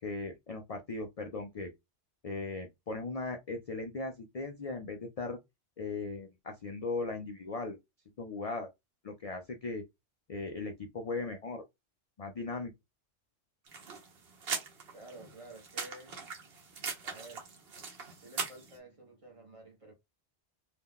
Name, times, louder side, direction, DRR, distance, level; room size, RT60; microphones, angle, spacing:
voice 1, 0.0-1.7 2.2-5.4 5.8-7.8 8.2-8.7 9.0-9.8 10.3-11.6 12.2-12.7, left 3 dB, 55° left, 0.4 m, -38 dB
sound 1, 13.7-18.7, right 5 dB, 60° right, 1.0 m, -41 dB
voice 2, 14.9-16.2 17.0-17.5 18.2-19.9, right 2 dB, 35° right, 0.7 m, -51 dB
2.7 x 2.2 x 3.6 m
omnidirectional pair, 1.2 m